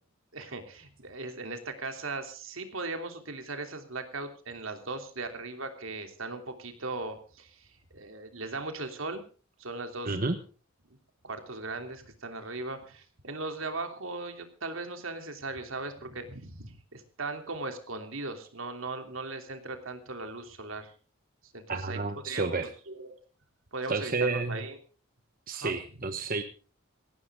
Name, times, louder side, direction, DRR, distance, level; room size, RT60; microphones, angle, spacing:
voice 1, 0.3-9.2 9.6-10.2 11.2-20.9 21.4-22.0 22.2-23.2 23.7-24.8 25.5-26.0, right 3 dB, 75° right, 6 dB, 3.1 m, -38 dB
voice 2, 10.0-10.4 21.7-22.7 23.9-24.6 25.5-26.4, right 3 dB, 45° right, 7 dB, 1.2 m, -30 dB
18.0 x 16.0 x 3.7 m, 0.38 s
head